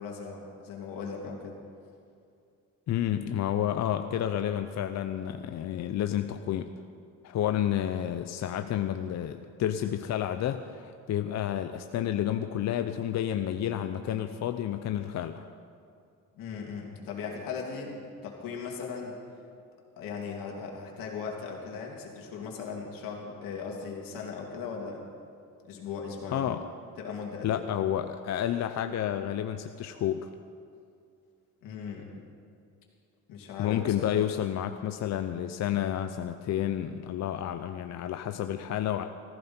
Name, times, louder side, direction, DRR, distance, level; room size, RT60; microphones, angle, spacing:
voice 1, 0.0-1.5 16.3-19.2 20.0-25.1 25.7-26.5 27.0-27.6 31.6-32.2 33.3-34.2, left 5 dB, 90° left, 0 dB, 2.9 m, -38 dB
voice 2, 2.9-6.7 7.2-15.4 26.3-26.6 27.4-30.3 33.6-39.0, left 11 dB, 55° left, 8 dB, 0.7 m, -30 dB
18.0 x 15.0 x 4.4 m, 2.5 s
cardioid pair, 120°, 33 cm